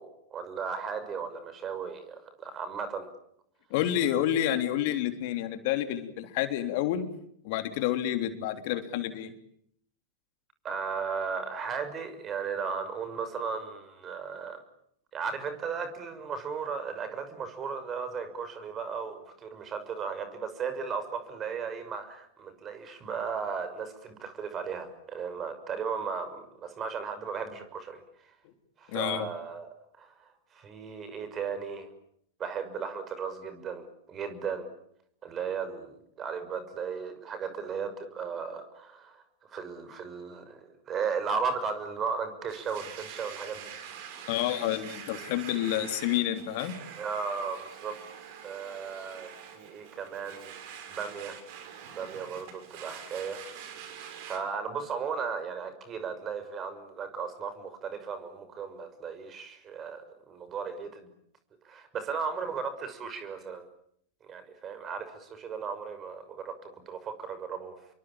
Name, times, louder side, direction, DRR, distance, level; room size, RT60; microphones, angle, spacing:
voice 1, 0.0-3.1 10.6-14.6 15.1-28.0 28.8-29.7 30.0-31.9 32.4-34.7 35.2-39.2 39.5-40.6 40.9-43.7 46.9-48.0 48.4-50.5 50.9-51.4 52.0-53.4 54.2-61.1 61.6-63.6 64.2-67.8, right 6 dB, 30° right, 10 dB, 6.1 m, -36 dB
voice 2, 3.7-7.1 7.4-9.3 28.9-29.3 44.3-46.7, left 12 dB, 55° left, 8 dB, 3.4 m, -29 dB
Domestic sounds home sounds, 42.5-54.4, right 8 dB, 55° right, 6.3 m, -45 dB
29.0 x 23.5 x 8.8 m, 0.70 s
hypercardioid pair, 95°, 0 cm